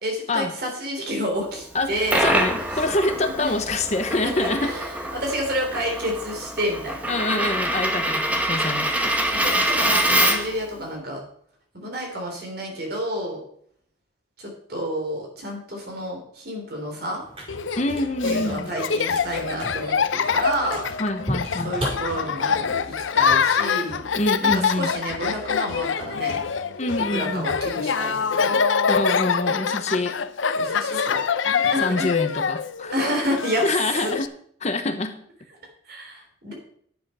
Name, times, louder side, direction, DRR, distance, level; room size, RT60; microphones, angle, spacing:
voice 1, 0.0-2.7 3.2-3.8 4.2-7.2 9.3-11.2 11.7-13.4 14.4-17.2 18.2-20.9 21.6-24.1 24.4-26.4 27.1-28.6 30.5-32.1 32.9-33.6 34.0-34.1 35.9-36.5, equal, 55° right, 2 dB, 3.3 m, -30 dB
voice 2, 1.7-4.7 7.1-9.2 17.8-18.7 21.0-21.8 24.1-24.9 26.8-27.5 28.9-30.2 31.8-33.1 33.6-34.3 34.6-35.2, left 2 dB, 35° left, 8 dB, 0.9 m, -26 dB
Coin (dropping), 1.7-10.6, right 1 dB, 10° right, 1.1 m, -25 dB
sound 1, 17.2-22.7, equal, 30° right, 5.5 m, -36 dB
Laughter, 17.5-34.3, left 6 dB, 85° left, 0.6 m, -25 dB
10.5 x 7.7 x 5.5 m, 0.64 s
head